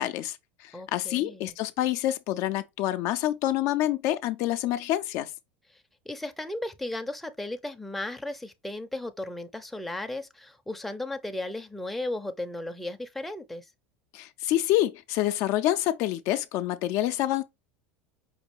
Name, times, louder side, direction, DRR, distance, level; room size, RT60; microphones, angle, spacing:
voice 1, 0.0-5.3 14.1-17.4, left 14 dB, 55° left, 0.4 m, -27 dB
voice 2, 0.7-1.5 5.7-13.7, left 2 dB, ahead, 0.5 m, -35 dB
5.3 x 2.3 x 3.1 m
supercardioid pair, 115°, 6 cm